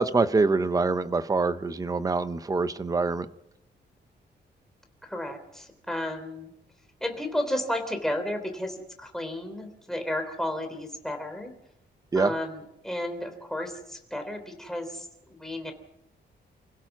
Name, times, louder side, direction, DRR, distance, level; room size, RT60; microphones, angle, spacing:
voice 1, 0.0-3.3 12.1-12.3, right 3 dB, 20° right, 12 dB, 0.8 m, -25 dB
voice 2, 5.0-6.5 7.0-11.5 12.1-15.7, left 1 dB, ahead, 5 dB, 3.4 m, -33 dB
29.5 x 16.5 x 6.1 m, 0.81 s
wide cardioid pair, 170°, 19 cm